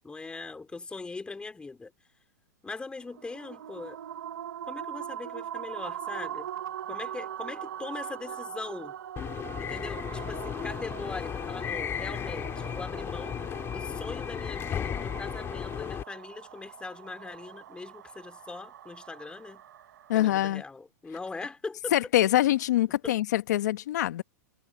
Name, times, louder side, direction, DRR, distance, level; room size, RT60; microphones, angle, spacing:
voice 1, 0.0-1.9 2.6-4.0 4.7-6.5 6.9-9.0 9.6-19.6 20.1-21.9 23.0-23.1, left 3 dB, 10° left, 2.8 m, -41 dB
sound 1, 3.0-20.3, right 10 dB, 85° right, 1.1 m, -41 dB
sound 2, 9.2-16.0, left 9 dB, 25° left, 3.2 m, -35 dB
voice 2, 20.1-20.6 21.9-24.2, left 14 dB, 75° left, 1.3 m, -24 dB
hypercardioid pair, 125°, 9 cm